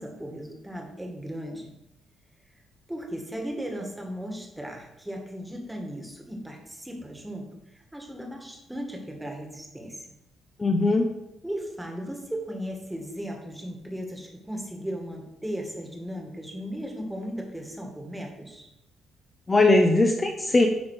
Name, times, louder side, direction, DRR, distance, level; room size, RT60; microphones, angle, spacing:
voice 1, 0.0-1.7 2.9-10.1 11.4-18.7, equal, 5° right, 1 dB, 1.8 m, -36 dB
voice 2, 10.6-11.1 19.5-20.7, left 2 dB, 25° left, 2 dB, 0.8 m, -20 dB
10.0 x 3.5 x 4.9 m, 0.86 s
cardioid pair, 90°, 0 cm